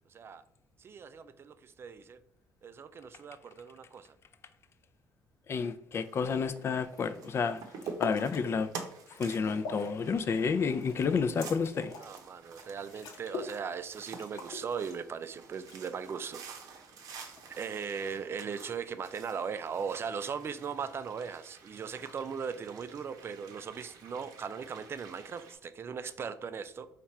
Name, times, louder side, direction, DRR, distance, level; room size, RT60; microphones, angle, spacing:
voice 1, 0.1-0.4 0.8-2.2 2.6-4.2 12.0-16.7 17.5-26.9, right 6 dB, 40° right, 0.4 m, -38 dB
voice 2, 5.5-7.6 8.0-8.7 9.2-11.9, left 5 dB, 45° left, 0.4 m, -30 dB
sound 1, 5.9-25.5, right 5 dB, 75° right, 0.7 m, -49 dB
sound 2, 6.9-7.1 7.5-8.4 8.9-10.0 10.3-12.2 12.6-12.7 12.9-13.6 13.9-14.0 14.2-15.3 15.7-16.2 17.1-17.6, left 4 dB, 75° left, 1.0 m, -42 dB
4.5 x 2.5 x 4.2 m
cardioid pair, 90°, 6 cm